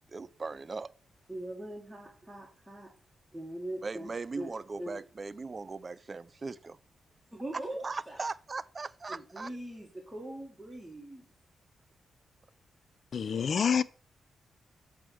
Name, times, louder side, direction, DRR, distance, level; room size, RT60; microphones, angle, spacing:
voice 1, 0.1-0.9 3.8-6.8 7.5-9.5, right 4 dB, 35° right, 0.4 m, -39 dB
voice 2, 1.3-2.9 3.3-4.1 4.4-4.5 4.8-5.0 7.3-8.3 9.1-11.2, right 1 dB, 10° right, 1.7 m, -41 dB
voice 3, 13.1-13.8, left 7 dB, 55° left, 0.4 m, -27 dB
7.5 x 3.5 x 6.1 m
cardioid pair, 100°, 0 cm